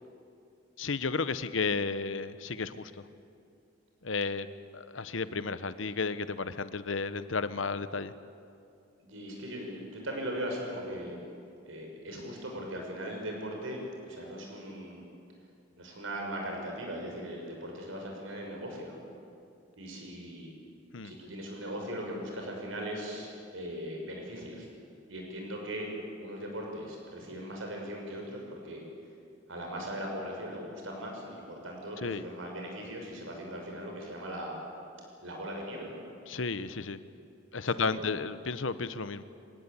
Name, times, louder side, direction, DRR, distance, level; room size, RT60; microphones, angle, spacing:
voice 1, 0.8-3.1 4.0-4.5 4.7-8.1 20.9-21.1 32.0-32.3 36.3-37.0 37.5-39.2, left 4 dB, 75° left, 13 dB, 0.9 m, -33 dB
voice 2, 9.0-11.2 11.6-15.0 15.8-19.0 19.8-20.5 21.0-24.7 25.1-25.9 26.2-28.8 29.5-34.6 35.2-36.0 37.6-38.1, equal, 85° right, 1 dB, 6.0 m, -39 dB
25.0 x 18.5 x 8.6 m, 2.5 s
head